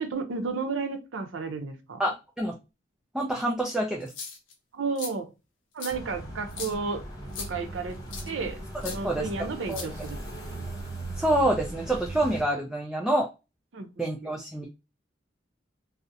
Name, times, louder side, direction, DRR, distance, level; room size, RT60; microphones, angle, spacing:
voice 1, 0.0-2.0 4.7-5.3 5.7-7.0 7.4-8.0 8.3-10.2 13.7-14.1, right 4 dB, 85° right, 6 dB, 0.5 m, -32 dB
voice 2, 2.0-2.5 3.1-4.1 8.8-9.3 9.7-9.9 11.2-13.3 14.0-14.7, right 1 dB, 5° right, 0 dB, 0.3 m, -27 dB
sound 1, 4.0-4.5 5.0-5.1 5.8-5.9 6.5-6.7 7.3-7.5 8.1-8.3 8.8-9.0 9.7-10.3, left 5 dB, 85° left, 0.6 m, -38 dB
sound 2, 5.9-12.4, right 2 dB, 20° left, 0.7 m, -38 dB
2.4 x 2.0 x 2.6 m, 0.27 s
head